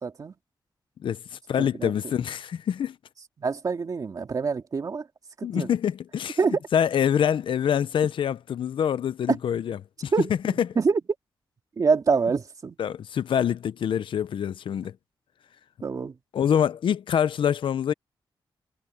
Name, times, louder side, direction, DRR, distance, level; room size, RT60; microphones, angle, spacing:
voice 1, 0.0-0.3 1.6-1.9 3.4-5.0 5.4-5.7 6.4-6.6 9.3-9.4 10.1-11.0 11.8-12.8 15.8-16.1, right 5 dB, 45° right, 2.4 m, -25 dB
voice 2, 1.0-3.0 5.4-6.4 6.7-10.7 12.8-14.9 16.3-17.9, left 8 dB, 85° left, 0.6 m, -25 dB
wide cardioid pair, 145°, 8 cm